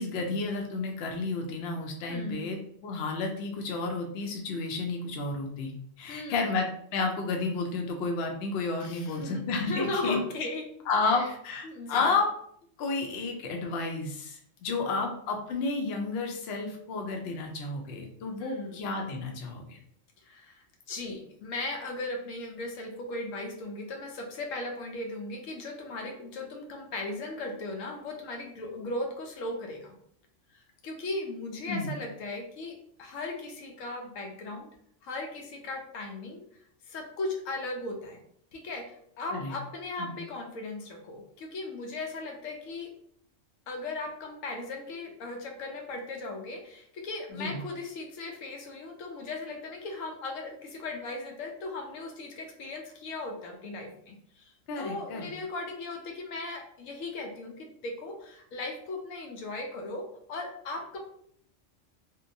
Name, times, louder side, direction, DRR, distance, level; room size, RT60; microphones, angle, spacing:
voice 1, 0.0-5.7 6.0-6.6 6.9-10.2 10.9-12.3 12.8-19.8 31.7-32.0 39.3-39.5 40.0-40.2 47.3-47.6 54.7-55.3, left 3 dB, 65° left, 2 dB, 0.7 m, -31 dB
voice 2, 2.1-2.5 6.1-6.6 8.8-10.6 11.0-11.3 11.6-12.2 14.8-15.1 18.4-18.8 20.2-29.9 30.5-34.7 35.0-36.4 36.9-38.2 38.5-42.9 43.7-61.0, left 2 dB, 90° left, 2 dB, 1.0 m, -37 dB
2.8 x 2.1 x 2.6 m, 0.66 s
omnidirectional pair, 1.3 m